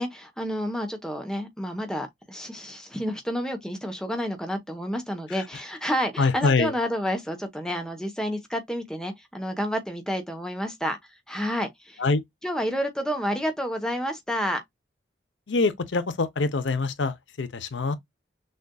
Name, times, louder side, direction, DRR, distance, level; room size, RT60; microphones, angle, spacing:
voice 1, 0.0-11.0 11.3-12.0 12.4-14.6, equal, 5° left, 0.9 m, -30 dB
voice 2, 6.2-6.7 12.0-12.2 15.5-18.0, left 3 dB, 80° left, 0.7 m, -24 dB
6.4 x 2.5 x 2.2 m
head